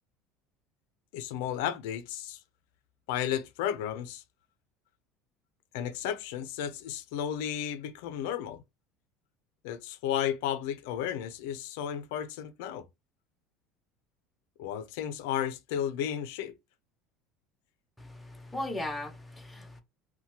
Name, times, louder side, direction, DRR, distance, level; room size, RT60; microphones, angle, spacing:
voice 1, 1.1-2.4 3.1-4.2 5.7-8.6 9.6-12.8 14.6-16.6, left 10 dB, 90° left, 0.4 m, -33 dB
voice 2, 18.0-19.8, left 1 dB, 5° left, 0.4 m, -37 dB
2.7 x 2.2 x 2.8 m
cardioid pair, 165°, 0 cm